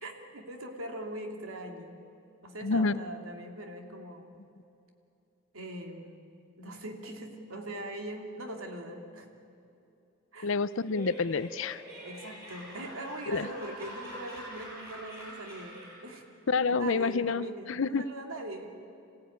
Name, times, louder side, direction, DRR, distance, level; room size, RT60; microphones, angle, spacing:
voice 1, 0.0-2.0 2.4-4.3 5.5-6.2 6.6-9.3 10.3-10.6 12.0-16.2 16.7-18.8, right 1 dB, 75° right, 3 dB, 2.7 m, -41 dB
voice 2, 2.6-2.9 10.4-11.8 13.3-13.5 16.5-18.0, left 4 dB, 60° left, 16 dB, 0.6 m, -28 dB
Laughter, 10.7-16.1, equal, 15° right, 7.2 m, -45 dB
26.5 x 16.0 x 9.4 m, 2.7 s
head